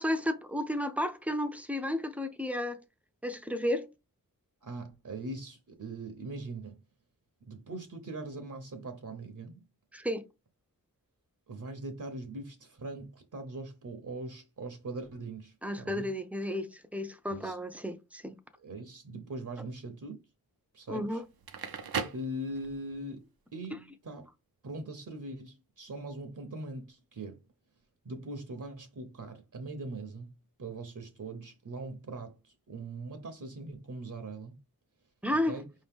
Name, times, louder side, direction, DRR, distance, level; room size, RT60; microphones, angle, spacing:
voice 1, 0.0-2.8 3.2-3.9 9.9-10.2 15.6-18.3 20.9-21.2 35.2-35.6, left 1 dB, 5° right, 0.5 m, -32 dB
voice 2, 4.6-6.8 7.5-9.6 11.5-16.1 17.3-17.6 18.6-20.2 20.7-21.2 22.1-23.2 23.5-24.3 24.6-27.4 28.0-30.3 30.6-34.6 35.5-35.7, right 2 dB, 60° right, 0.8 m, -41 dB
Crackle, 21.3-23.0, right 6 dB, 90° right, 0.6 m, -37 dB
5.2 x 2.8 x 3.5 m
wide cardioid pair, 80°, 36 cm